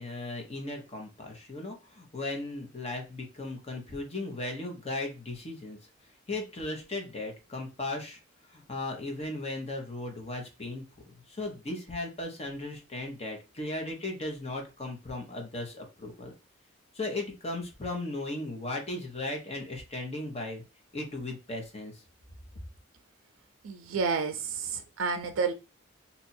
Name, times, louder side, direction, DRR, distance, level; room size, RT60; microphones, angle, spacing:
voice 1, 0.0-5.8 6.3-8.2 8.5-10.8 11.3-16.3 16.9-20.6 20.9-21.9, left 2 dB, 30° left, 2 dB, 1.0 m, -36 dB
voice 2, 23.6-25.5, right 5 dB, 90° right, 7 dB, 0.4 m, -30 dB
2.8 x 2.6 x 4.2 m, 0.31 s
head